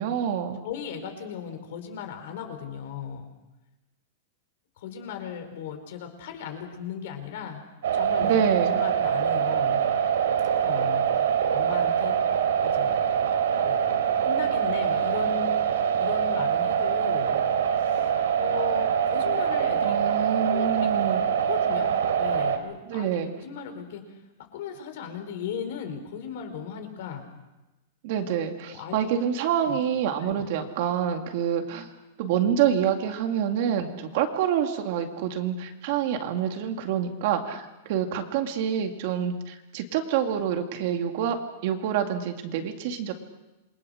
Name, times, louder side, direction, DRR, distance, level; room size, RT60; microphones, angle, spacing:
voice 1, 0.0-0.6 8.2-8.8 19.8-21.2 22.9-23.3 28.0-31.9 32.2-43.1, right 9 dB, 40° right, 5 dB, 2.3 m, -27 dB
voice 2, 0.6-3.3 4.8-7.6 7.9-8.4 8.7-9.8 10.6-11.0 11.5-12.2 12.6-13.1 13.6-15.5 16.0-17.4 18.4-19.9 20.5-20.9 21.5-23.1 23.4-24.0 24.5-27.3 28.7-29.0 29.6-29.8 30.2-30.5, left 8 dB, 50° left, 6 dB, 4.7 m, -37 dB
sound 1, 7.8-22.6, right 8 dB, 85° right, 3.7 m, -24 dB
28.0 x 23.0 x 6.5 m, 1.0 s
supercardioid pair, 175°, 0 cm